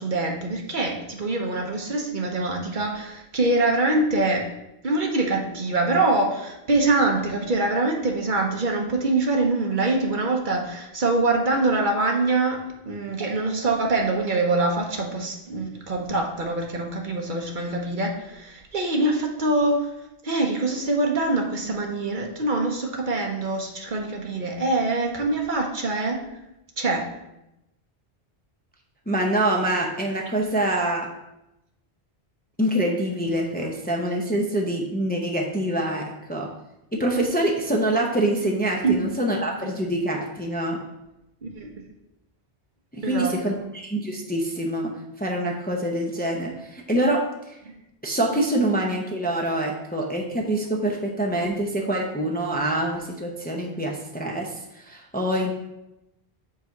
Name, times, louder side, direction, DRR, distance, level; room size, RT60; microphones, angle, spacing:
voice 1, 0.0-4.5 4.8-12.6 12.9-19.9 20.2-26.2 26.8-27.1 30.6-30.7 38.8-39.1 39.6-39.7 41.4-41.7 43.0-43.4 47.6-47.7, right 2 dB, 55° right, 1 dB, 0.9 m, -24 dB
voice 2, 29.1-31.1 32.6-36.0 36.3-36.5 36.9-40.8 42.9-44.9 45.2-47.2 48.0-55.5, right 1 dB, 10° left, -1 dB, 0.6 m, -25 dB
4.8 x 4.0 x 5.8 m, 0.90 s
omnidirectional pair, 1.0 m